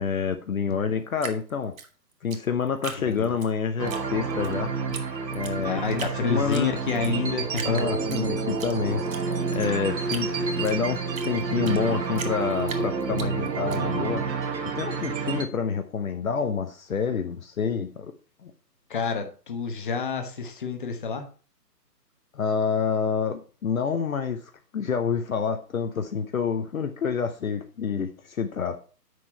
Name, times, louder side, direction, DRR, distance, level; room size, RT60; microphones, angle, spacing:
voice 1, 0.0-1.7 2.2-4.7 5.3-6.7 7.6-14.2 14.7-18.1 18.4-18.5 22.3-28.8, left 6 dB, 55° left, 0.9 m, -28 dB
Drip, 1.2-3.5 3.9-4.5 4.9-5.0 5.3-6.2 6.5-7.1 7.5-8.7 9.1-11.8 12.2-13.8, right 5 dB, 55° right, 1.4 m, -38 dB
voice 2, 3.0-3.3 4.9-5.0 5.6-7.9 18.9-21.2, left 5 dB, 30° left, 1.1 m, -29 dB
sound 1, 3.8-15.4, right 4 dB, 90° right, 1.6 m, -29 dB
7.7 x 6.2 x 4.3 m
hypercardioid pair, 160°, 50 cm